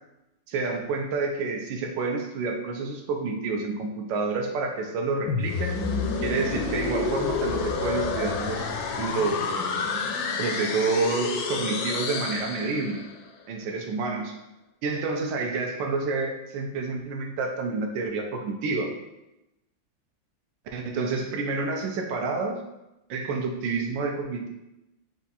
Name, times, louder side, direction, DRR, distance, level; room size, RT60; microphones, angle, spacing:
voice 1, 0.5-5.7 6.2-8.7 9.0-9.8 10.4-13.0 13.5-14.3 14.8-18.9 20.7-22.6 23.1-24.5, right 3 dB, 75° right, 3 dB, 1.2 m, -29 dB
sound 1, 5.3-13.2, left 4 dB, 75° left, 1.2 m, -29 dB
4.5 x 2.4 x 4.0 m, 0.94 s
omnidirectional pair, 2.1 m